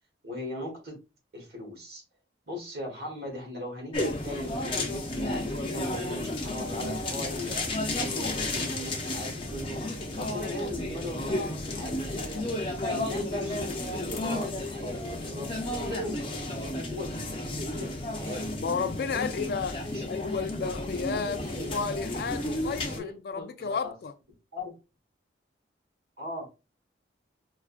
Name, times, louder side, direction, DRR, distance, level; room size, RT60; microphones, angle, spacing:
voice 1, 0.2-1.0 1.3-2.0 2.5-9.8 10.2-12.4 12.9-18.5 19.9-20.1 20.6-22.0 22.8-23.9 24.5-24.7 26.2-26.4, left 1 dB, 55° right, 1.5 m, -39 dB
sound 1, 3.9-23.0, left 1 dB, 30° left, 0.7 m, -32 dB
voice 2, 18.6-19.8 20.1-21.4 21.7-24.1, left 5 dB, 55° left, 0.3 m, -32 dB
4.8 x 2.4 x 2.4 m
head